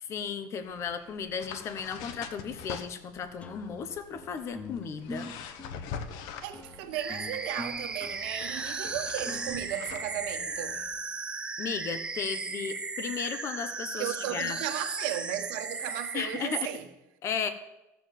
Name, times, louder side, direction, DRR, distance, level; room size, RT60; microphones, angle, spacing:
voice 1, 0.0-5.3 11.6-14.6 16.1-16.7 17.2-17.5, left 6 dB, 45° left, 1.2 m, -35 dB
sound 1, 0.6-11.0, left 6 dB, 75° left, 1.1 m, -45 dB
sound 2, 3.4-10.8, left 1 dB, 20° left, 0.9 m, -45 dB
voice 2, 6.4-10.8 14.0-16.9, right 12 dB, 80° right, 1.4 m, -35 dB
sound 3, 6.9-16.6, right 4 dB, 15° right, 0.8 m, -36 dB
13.5 x 7.2 x 7.5 m
cardioid pair, 130°, 7 cm